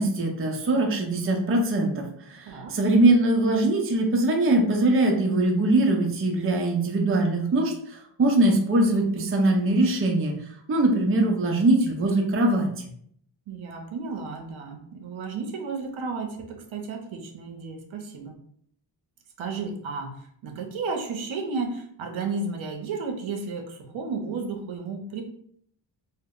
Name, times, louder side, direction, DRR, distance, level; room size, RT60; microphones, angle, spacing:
voice 1, 0.0-10.3 10.7-12.7, right 2 dB, 30° right, 1 dB, 0.5 m, -22 dB
voice 2, 2.5-2.8 13.5-18.4 19.4-25.2, right 4 dB, 75° right, 3 dB, 0.6 m, -33 dB
2.1 x 2.0 x 3.5 m, 0.66 s
wide cardioid pair, 105°, 48 cm